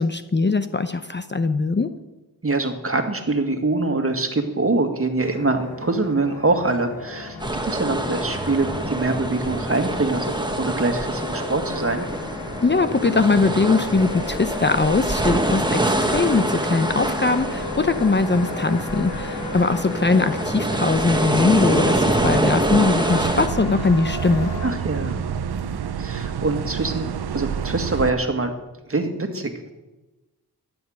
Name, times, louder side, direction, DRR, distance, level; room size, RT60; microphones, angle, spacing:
voice 1, 0.0-1.9 12.6-24.5, left 3 dB, 25° left, 10 dB, 0.8 m, -21 dB
voice 2, 2.4-12.1 24.6-25.2 26.0-28.6 28.9-29.7, right 3 dB, 35° right, 6 dB, 2.1 m, -24 dB
sound 1, 5.2-24.7, left 4 dB, 75° left, 2.6 m, -34 dB
sound 2, 7.4-23.5, right 1 dB, 10° right, 1.7 m, -25 dB
sound 3, 23.1-28.1, right 7 dB, 75° right, 0.9 m, -28 dB
14.0 x 9.8 x 6.5 m, 1.1 s
cardioid pair, 60°, 40 cm